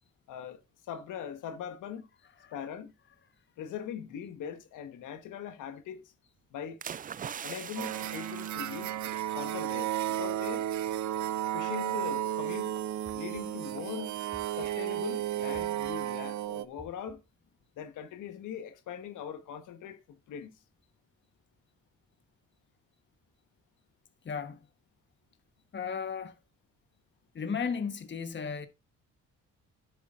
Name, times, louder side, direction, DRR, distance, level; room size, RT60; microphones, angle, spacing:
voice 1, 0.3-0.6 0.9-2.1 2.5-2.9 3.6-6.1 6.5-6.8 7.4-8.9 9.3-10.7 11.5-12.7 13.1-14.1 14.6-17.2 17.8-20.6, left 8 dB, 85° left, 1.4 m, -41 dB
sound 1, 6.8-9.8 10.2-10.4, right 8 dB, 30° right, 0.3 m, -42 dB
sound 2, 7.8-16.6, right 12 dB, 70° right, 0.7 m, -33 dB
sound 3, 13.0-13.7 14.3-15.0 15.5-16.2 16.8-17.4, right 1 dB, ahead, 2.2 m, -55 dB
voice 2, 24.2-24.7 25.7-26.3 27.3-28.7, left 6 dB, 40° left, 1.2 m, -34 dB
10.5 x 8.0 x 2.5 m
cardioid pair, 90°, 30 cm